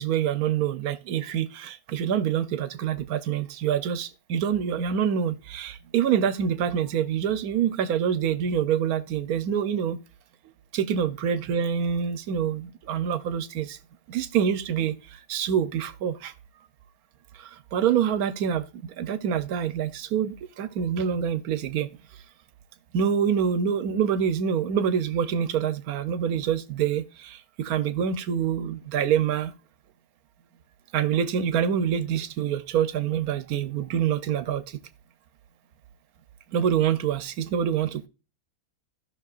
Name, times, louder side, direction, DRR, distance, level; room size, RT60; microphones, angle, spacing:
voice 1, 0.0-10.0 10.7-13.8 14.1-16.3 17.3-21.9 22.9-29.5 30.9-34.8 36.5-38.1, right 8 dB, 75° right, 1.2 m, -26 dB
15.5 x 6.0 x 2.5 m
omnidirectional pair, 1.6 m